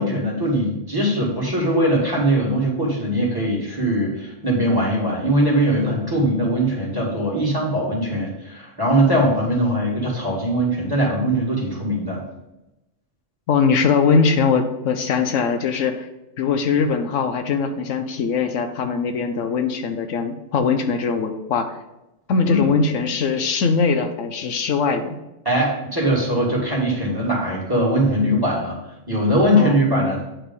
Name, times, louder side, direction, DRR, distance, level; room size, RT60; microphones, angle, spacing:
voice 1, 0.0-12.2 22.4-22.7 25.5-28.8 29.1-30.2, right 1 dB, 20° right, -4 dB, 2.0 m, -21 dB
voice 2, 13.5-16.1 16.4-21.7 22.3-25.2 29.5-29.8, left 5 dB, 85° left, 7 dB, 1.1 m, -21 dB
8.8 x 3.3 x 5.3 m, 0.95 s
omnidirectional pair, 1.3 m